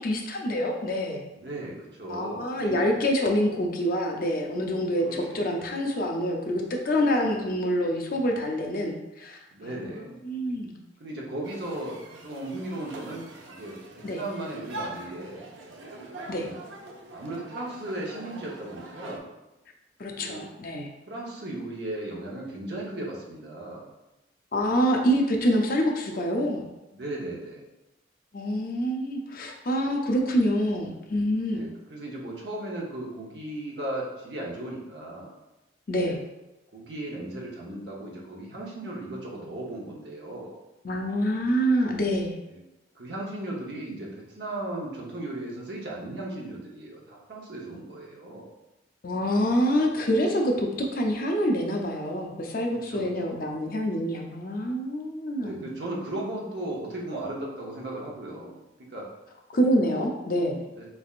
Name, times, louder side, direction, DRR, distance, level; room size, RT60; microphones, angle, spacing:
voice 1, 0.0-1.3 2.1-9.9 10.2-10.7 14.0-14.2 16.3-16.5 20.0-20.9 24.5-26.6 28.3-31.6 35.9-36.2 40.8-42.4 49.0-55.6 59.5-60.6, equal, 50° left, 1 dB, 0.5 m, -26 dB
voice 2, 1.3-2.9 5.0-5.5 9.5-10.2 11.0-15.5 16.3-16.5 17.1-19.3 20.2-20.4 21.1-23.9 26.9-27.6 31.5-35.3 36.0-36.2 36.7-40.6 42.5-42.6 42.9-48.5 52.8-53.4 55.4-59.1 59.8-60.0 60.7-60.9, right 1 dB, 60° right, -3 dB, 0.9 m, -36 dB
sound 1, 11.4-19.2, right 2 dB, 85° right, 0.6 m, -43 dB
4.1 x 3.3 x 2.4 m, 0.98 s
head